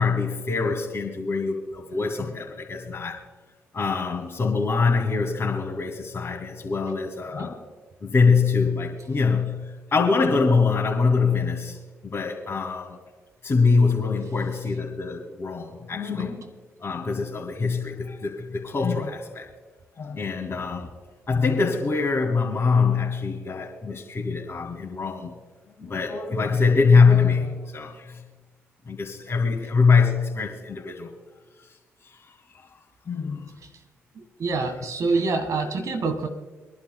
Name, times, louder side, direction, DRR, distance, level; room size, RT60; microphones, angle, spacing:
voice 1, 0.0-3.2 3.7-7.6 8.0-13.0 13.4-16.5 16.8-19.5 20.0-21.0 21.3-25.4 25.8-28.2 28.9-31.1 31.6-31.7 32.0-32.3 32.5-32.7 33.1-33.5, left 4 dB, 45° left, -5 dB, 2.4 m, -24 dB
voice 2, 34.2-36.3, right 3 dB, 60° right, 8 dB, 1.8 m, -26 dB
26.5 x 11.5 x 2.3 m, 1.3 s
hypercardioid pair, 45°, 6 cm